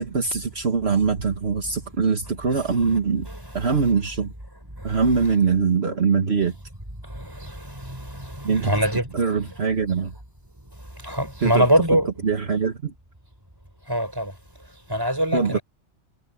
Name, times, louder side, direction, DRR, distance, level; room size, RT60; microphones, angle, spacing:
voice 1, 0.0-3.3 3.5-4.3 4.8-6.6 8.4-8.7 9.1-10.1 11.4-11.7 12.2-12.9 15.3-15.6, right 5 dB, 60° right, 1.8 m, -22 dB
voice 2, 7.2-9.1 11.0-12.1 13.9-14.3 14.9-15.6, equal, 20° right, 6.2 m, -23 dB
omnidirectional pair, 1.2 m